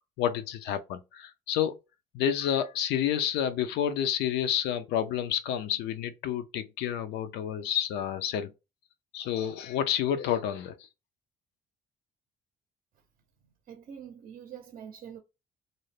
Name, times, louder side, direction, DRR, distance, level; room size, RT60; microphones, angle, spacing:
voice 1, 0.2-1.7 2.1-8.5 9.1-10.7, left 9 dB, 80° left, 0.5 m, -29 dB
voice 2, 13.7-15.2, right 8 dB, 50° right, 0.6 m, -45 dB
2.6 x 2.0 x 3.1 m
cardioid pair, 110°, 17 cm